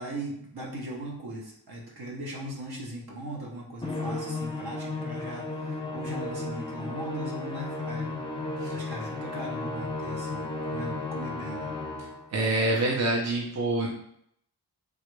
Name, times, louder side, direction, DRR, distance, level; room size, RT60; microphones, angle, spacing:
voice 1, 0.0-8.2 8.7-11.7, right 1 dB, 70° right, -2 dB, 0.9 m, -39 dB
Musical instrument, 3.8-12.3, left 2 dB, 15° left, 0.5 m, -34 dB
voice 2, 12.3-13.9, right 2 dB, 40° right, -2 dB, 0.6 m, -26 dB
3.4 x 2.4 x 3.1 m, 0.70 s
wide cardioid pair, 125°, 39 cm